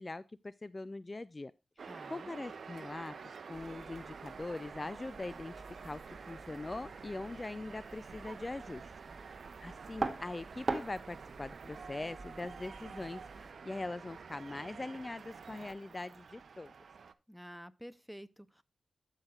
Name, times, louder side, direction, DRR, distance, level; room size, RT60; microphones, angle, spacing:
voice 1, 0.0-1.5 1.8-3.2 3.5-5.5 5.8-6.0 6.3-8.9 9.2-16.7, left 2 dB, 35° left, 0.4 m, -42 dB
sound 1, 1.8-17.1, right 5 dB, 75° right, 0.6 m, -49 dB
voice 2, 1.9-2.3 17.3-18.6, equal, 5° right, 0.8 m, -50 dB
sound 2, 3.5-13.5, right 3 dB, 40° right, 1.5 m, -45 dB
14.5 x 5.7 x 2.3 m
cardioid pair, 50°, 0 cm